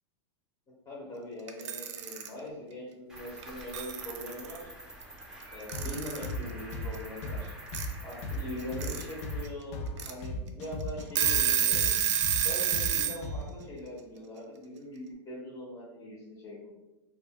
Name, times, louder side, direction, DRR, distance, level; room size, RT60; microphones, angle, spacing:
voice 1, 0.8-4.7 5.5-7.5 8.0-11.9 12.4-16.7, left 1 dB, 25° left, -5 dB, 0.8 m, -42 dB
Alarm / Clock, 1.5-2.3 3.4-3.5 3.7-4.6 5.7-6.3 7.7-7.9 8.6-9.0 9.5-9.6 10.0-10.1 10.6-10.7 11.0-13.2, right 9 dB, 90° right, 0.4 m, -28 dB
Cricket, 3.1-9.5, right 1 dB, 5° right, 0.5 m, -47 dB
sound 1, 5.7-13.6, left 1 dB, 70° left, 0.5 m, -37 dB
2.3 x 2.2 x 3.5 m, 1.0 s
supercardioid pair, 130°, 15 cm